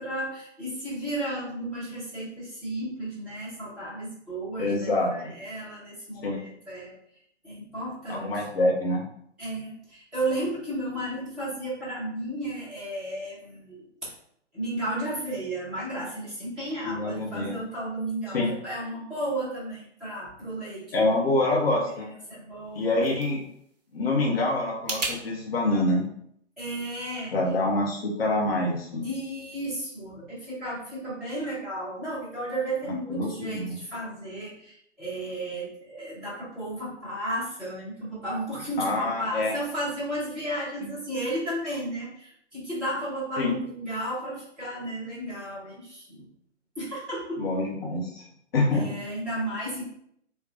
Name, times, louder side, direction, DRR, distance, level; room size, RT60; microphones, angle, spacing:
voice 1, 0.0-6.9 7.4-8.3 9.4-13.8 14.5-20.8 21.1-21.3 22.0-22.9 26.6-27.3 29.0-46.3 46.8-47.4 48.7-49.9, right 1 dB, ahead, -14 dB, 0.5 m, -33 dB
voice 2, 4.6-5.3 6.2-6.4 8.1-9.0 16.8-17.6 18.3-18.5 20.9-22.1 22.7-23.4 23.9-26.0 27.3-29.1 33.1-33.8 38.8-39.6 40.8-40.9 43.4-43.5 47.4-48.3 48.5-48.9, left 2 dB, 55° left, -2 dB, 0.9 m, -26 dB
sound 1, 22.5-25.2, right 3 dB, 35° right, 0.7 m, -37 dB
3.7 x 2.2 x 2.5 m, 0.70 s
figure-of-eight pair, 125°, 36 cm